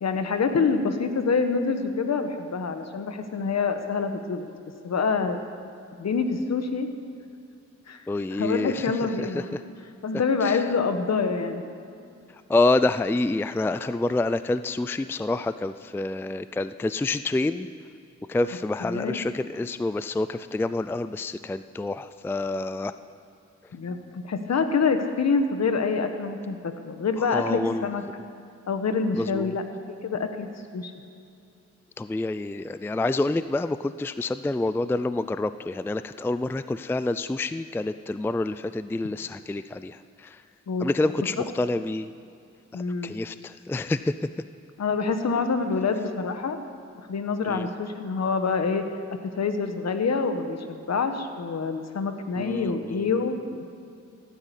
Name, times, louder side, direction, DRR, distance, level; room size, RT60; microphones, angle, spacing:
voice 1, 0.0-4.5 4.8-5.4 6.0-6.9 7.9-8.0 8.3-9.5 10.0-11.6 18.8-19.2 23.7-28.0 28.7-29.6 30.0-30.9 40.7-40.9 41.4-41.5 42.7-43.1 44.8-46.6 47.1-53.3, left 4 dB, 60° left, 7 dB, 1.4 m, -26 dB
voice 2, 8.1-8.9 9.2-9.6 10.4-10.6 12.5-17.7 18.3-22.9 27.2-27.9 29.2-29.6 32.0-40.4 40.8-42.1 42.7-44.1 47.5-47.7 52.4-53.2, left 2 dB, 10° left, 13 dB, 0.4 m, -27 dB
16.0 x 9.7 x 8.3 m, 2.5 s
cardioid pair, 85°, 29 cm